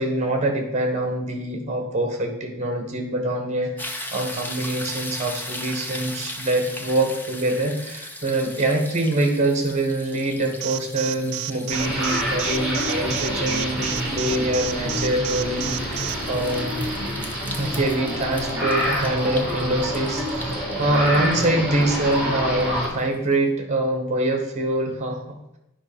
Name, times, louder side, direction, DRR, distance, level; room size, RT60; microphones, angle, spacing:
voice 1, 0.0-16.7 17.5-25.2, right 1 dB, 30° right, 3 dB, 1.5 m, -24 dB
sound 1, 3.8-22.8 23.3-23.4, left 1 dB, 10° left, 0.7 m, -39 dB
Alarm, 10.6-16.1, right 16 dB, 65° right, 0.4 m, -30 dB
sound 2, 11.7-22.9, equal, 5° right, 3.5 m, -27 dB
9.8 x 5.7 x 5.1 m, 0.86 s
head